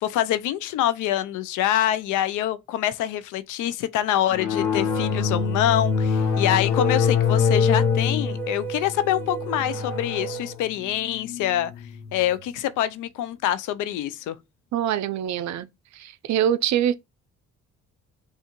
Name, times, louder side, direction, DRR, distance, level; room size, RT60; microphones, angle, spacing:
voice 1, 0.0-11.7 12.1-14.4, left 12 dB, 80° left, 0.5 m, -25 dB
sound 1, 4.3-12.4, left 6 dB, 60° left, 0.9 m, -25 dB
sound 2, 4.5-10.5, right 11 dB, 5° left, 0.8 m, -36 dB
voice 2, 14.7-15.7 15.9-16.9, right 10 dB, 65° right, 0.5 m, -24 dB
5.5 x 2.4 x 3.0 m
cardioid pair, 90°, 30 cm